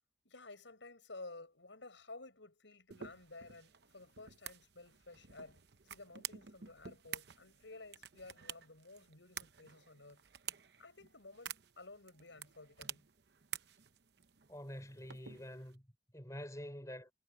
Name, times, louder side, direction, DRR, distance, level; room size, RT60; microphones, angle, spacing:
voice 1, 0.2-5.6 5.9-10.2 10.8-13.0, left 2 dB, 70° left, 5.3 m, -54 dB
sound 1, 2.9-15.8, right 9 dB, 55° right, 0.9 m, -50 dB
voice 2, 14.5-17.1, equal, 15° left, 5.1 m, -47 dB
head